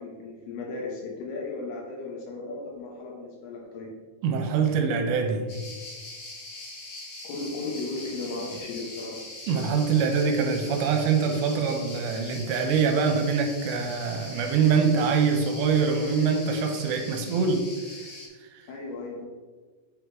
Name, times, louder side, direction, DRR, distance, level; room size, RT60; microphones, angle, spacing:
voice 1, 0.0-3.9 7.2-9.2 18.7-19.3, left 3 dB, 70° left, -1 dB, 3.0 m, -35 dB
voice 2, 4.2-5.5 9.5-17.7 18.5-18.7, right 5 dB, 80° right, 4 dB, 2.9 m, -24 dB
sound 1, 5.5-18.3, left 2 dB, 55° left, 2.5 m, -42 dB
8.3 x 3.9 x 4.6 m, 1.4 s
omnidirectional pair, 5.1 m